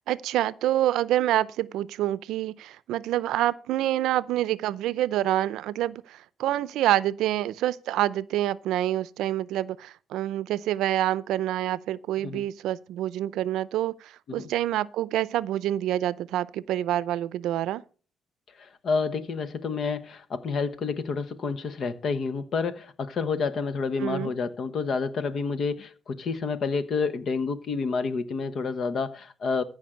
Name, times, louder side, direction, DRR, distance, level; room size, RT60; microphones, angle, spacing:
voice 1, 0.1-17.8 24.0-24.3, right 13 dB, 85° right, 0.5 m, -27 dB
voice 2, 18.6-29.6, left 4 dB, 60° left, 1.1 m, -29 dB
14.5 x 5.2 x 6.3 m
cardioid pair, 90°, 0 cm